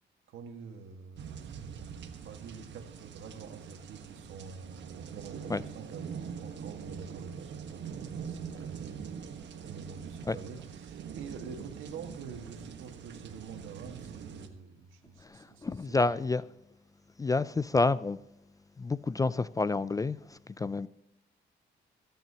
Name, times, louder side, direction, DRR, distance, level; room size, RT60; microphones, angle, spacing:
voice 1, 0.3-16.2, right 5 dB, 80° right, 1.7 m, -47 dB
sound 1, 1.2-14.5, right 7 dB, 65° right, 1.3 m, -43 dB
voice 2, 15.2-16.4 17.2-18.2 18.8-20.9, left 3 dB, 15° left, 0.3 m, -29 dB
23.0 x 9.1 x 2.9 m
cardioid pair, 90°, 20 cm